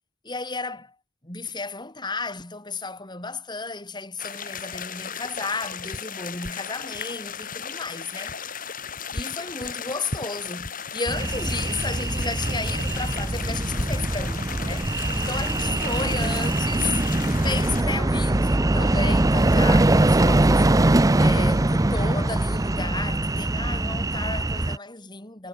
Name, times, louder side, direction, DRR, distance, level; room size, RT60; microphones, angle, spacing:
voice 1, 0.2-1.0 1.2-8.4 9.1-17.0 17.4-20.7 21.2-25.5, left 3 dB, 25° left, 3.9 m, -33 dB
sound 1, 4.2-17.8, left 5 dB, 45° left, 7.6 m, -35 dB
sound 2, 11.1-24.8, right 2 dB, 20° right, 0.6 m, -22 dB
head